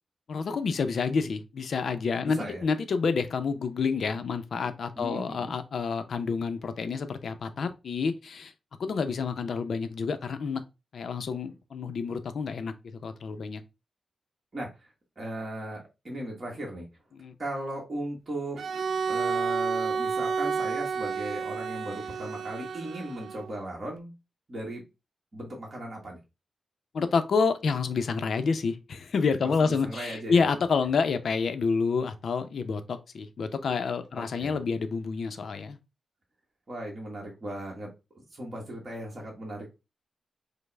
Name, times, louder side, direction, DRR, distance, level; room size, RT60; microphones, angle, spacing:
voice 1, 0.3-8.5 8.8-10.6 10.9-13.6 17.1-17.3 26.9-35.8, left 5 dB, 70° left, 0.5 m, -28 dB
voice 2, 2.2-2.6 5.0-5.5 14.5-14.9 15.2-16.9 17.4-18.6 19.1-24.1 24.5-24.8 25.3-26.2 29.4-30.5 34.1-34.6 36.7-37.9 38.3-39.7, right 1 dB, 35° right, 1.2 m, -37 dB
Bowed string instrument, 18.5-23.5, right 5 dB, 85° right, 0.3 m, -30 dB
5.2 x 2.0 x 3.3 m
wide cardioid pair, 130°, 0 cm